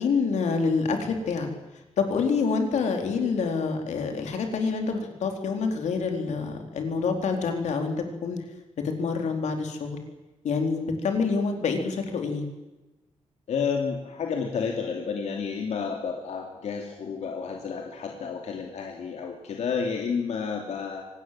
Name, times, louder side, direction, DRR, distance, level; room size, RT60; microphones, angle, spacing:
voice 1, 0.0-1.5 2.0-8.0 8.2-8.4 9.0-10.0 10.4-12.5, left 4 dB, 90° left, 4 dB, 4.0 m, -27 dB
voice 2, 13.5-21.0, left 6 dB, 70° left, 1 dB, 3.0 m, -30 dB
25.0 x 19.0 x 7.7 m, 1.1 s
wide cardioid pair, 145°, 12 cm